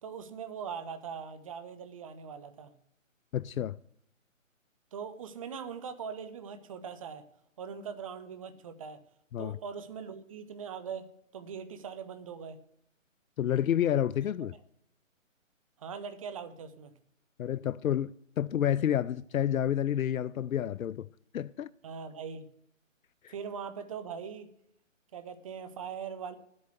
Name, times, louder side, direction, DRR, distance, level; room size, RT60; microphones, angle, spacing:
voice 1, 0.0-2.7 4.9-7.3 7.6-9.0 9.4-12.6 14.4-14.5 15.8-16.9 21.8-22.5 23.3-24.5 25.1-26.4, right 6 dB, 25° right, 0.8 m, -41 dB
voice 2, 3.3-3.8 9.3-9.6 13.4-14.5 17.4-21.1 21.3-21.7 23.2-23.3, left 10 dB, 90° left, 0.5 m, -29 dB
9.8 x 8.6 x 8.2 m
hypercardioid pair, 155°, 40 cm